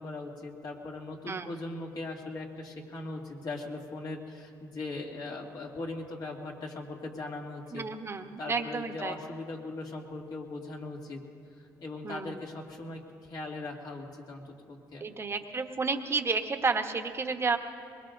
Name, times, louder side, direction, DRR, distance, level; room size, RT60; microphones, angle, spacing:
voice 1, 0.0-7.8 8.4-11.2 11.5-15.0, left 2 dB, 55° left, -1 dB, 2.5 m, -39 dB
voice 2, 7.7-9.1 12.0-12.4 15.0-17.6, right 4 dB, 30° right, 6 dB, 1.1 m, -31 dB
23.5 x 21.5 x 2.6 m, 2.4 s
supercardioid pair, 75°, 8 cm